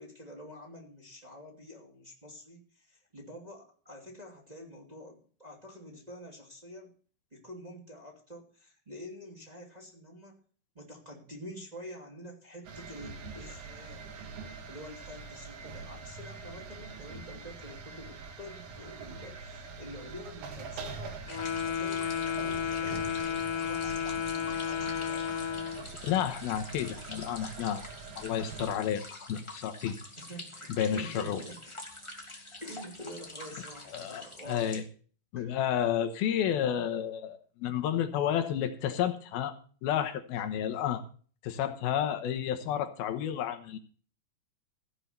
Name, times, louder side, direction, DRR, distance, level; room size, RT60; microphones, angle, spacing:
voice 1, 0.0-7.0 7.3-10.4 10.7-14.1 14.7-21.2 21.6-25.5 30.2-31.8 32.6-34.8 35.3-35.5, equal, 15° right, -1 dB, 2.2 m, -47 dB
sound 1, 12.6-28.7, right 4 dB, 85° right, 3.6 m, -44 dB
Wind instrument woodwind instrument, 21.3-25.9, left 8 dB, 65° left, 2.7 m, -32 dB
sound 2, 21.3-34.8, left 1 dB, 15° left, 1.3 m, -46 dB
voice 2, 26.0-27.8 28.2-29.0 29.3-30.0 30.8-31.4 33.9-34.8 35.3-39.6 39.8-41.0 41.4-43.8, left 9 dB, 85° left, 8 dB, 3.0 m, -31 dB
16.0 x 5.7 x 8.0 m, 0.42 s
omnidirectional pair, 4.3 m